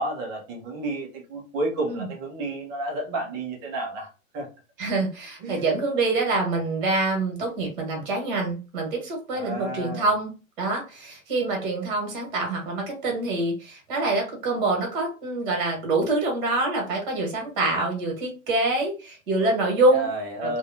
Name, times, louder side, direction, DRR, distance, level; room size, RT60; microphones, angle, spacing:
voice 1, 0.0-4.1 4.3-4.5 5.4-5.6 9.3-10.1 19.9-20.6, right 2 dB, 15° right, 0 dB, 0.3 m, -31 dB
voice 2, 4.8-20.1 20.4-20.6, right 2 dB, 40° right, 1 dB, 1.3 m, -25 dB
2.7 x 2.1 x 2.5 m, 0.33 s
figure-of-eight pair, 110°, 41 cm